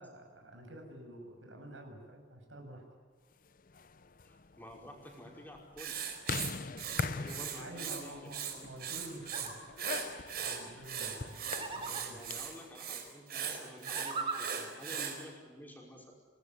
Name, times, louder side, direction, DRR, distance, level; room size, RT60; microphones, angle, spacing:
voice 1, 0.0-2.8 7.2-9.5 10.4-11.3 11.7-12.2, right 1 dB, 85° right, 3 dB, 7.6 m, -49 dB
sound 1, 3.6-12.7, left 4 dB, 45° left, 0.7 m, -43 dB
voice 2, 4.2-6.0 7.1-8.7 11.7-16.1, equal, 10° left, 0 dB, 5.3 m, -51 dB
Writing, 5.8-8.0 8.3-9.5 9.8-15.2, right 8 dB, 50° right, 4.7 m, -39 dB
sound 2, 9.2-9.5 11.5-12.0 13.7-14.4, right 4 dB, 30° right, 3.5 m, -38 dB
26.5 x 19.5 x 9.8 m, 1.5 s
head